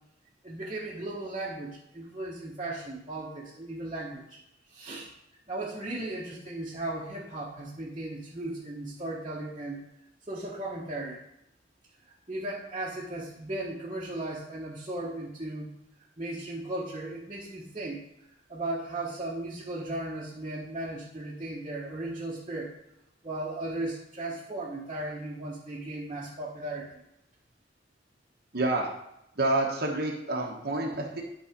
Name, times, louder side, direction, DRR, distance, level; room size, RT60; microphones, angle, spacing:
voice 1, 0.4-4.4 4.7-5.1 5.5-9.8 10.3-11.2 12.3-15.7 16.2-18.1 18.5-22.7 23.2-26.9, right 2 dB, 30° right, -7 dB, 1.3 m, -36 dB
voice 2, 28.5-28.9 29.3-31.2, right 2 dB, 55° right, -1 dB, 1.2 m, -28 dB
11.0 x 4.1 x 5.1 m, 0.81 s
head